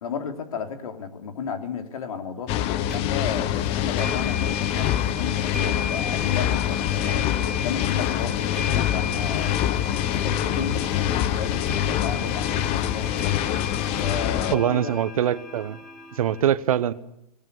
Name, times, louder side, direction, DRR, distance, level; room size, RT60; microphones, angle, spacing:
voice 1, 0.0-7.3 7.6-9.5 10.1-13.3 14.0-15.0, left 6 dB, 60° left, 5 dB, 3.5 m, -33 dB
sound 1, 2.5-14.6, left 11 dB, 30° left, 1.2 m, -25 dB
sound 2, 2.9-3.0 4.0-16.4, left 4 dB, ahead, 3.5 m, -36 dB
voice 2, 14.5-15.8 16.1-16.9, right 10 dB, 60° right, 16 dB, 1.1 m, -23 dB
20.0 x 18.0 x 9.7 m, 0.84 s
hypercardioid pair, 130°, 20 cm